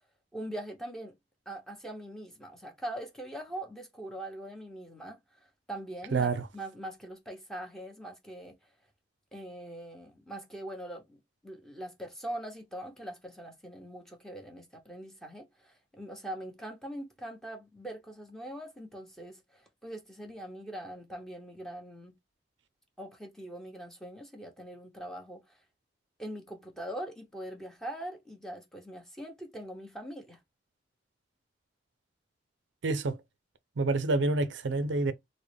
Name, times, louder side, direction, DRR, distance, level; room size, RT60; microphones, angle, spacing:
voice 1, 0.3-1.1 1.5-5.2 5.7-8.5 9.3-11.2 11.4-22.1 23.0-25.6 26.2-30.4, right 1 dB, ahead, 0.9 m, -42 dB
voice 2, 6.1-6.5 32.8-33.2 33.8-35.1, right 3 dB, 70° right, 0.5 m, -27 dB
3.5 x 2.1 x 3.2 m
head